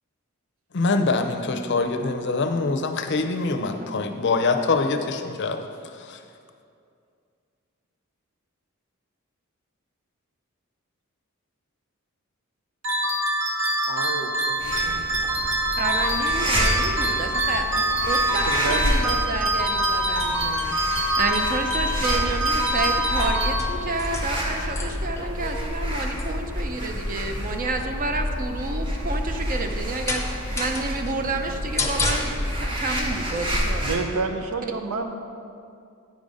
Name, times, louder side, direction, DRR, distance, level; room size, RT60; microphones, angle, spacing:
voice 1, 0.7-5.7 5.9-6.2, left 3 dB, 55° left, 6 dB, 0.6 m, -24 dB
sound 1, 12.8-24.1, right 1 dB, 60° right, 1.0 m, -25 dB
voice 2, 13.9-15.0 18.3-19.1 33.8-35.2, right 3 dB, 85° right, 6 dB, 0.7 m, -30 dB
sound 2, 14.6-34.0, equal, 25° right, 1.1 m, -30 dB
voice 3, 15.8-20.7 21.2-33.9, right 3 dB, 40° right, 5 dB, 0.6 m, -30 dB
sound 3, 22.2-32.7, left 1 dB, 15° left, 0.7 m, -30 dB
9.1 x 5.2 x 5.2 m, 2.4 s
head